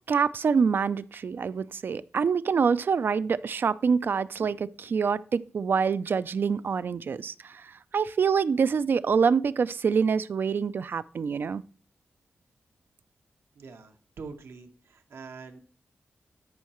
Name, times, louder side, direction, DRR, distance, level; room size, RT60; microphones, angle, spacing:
voice 1, 0.1-7.6 7.9-11.6, right 6 dB, 55° right, 0.3 m, -26 dB
voice 2, 13.6-15.6, right 4 dB, 85° right, 1.1 m, -44 dB
12.5 x 5.6 x 3.0 m
wide cardioid pair, 160°, 4 cm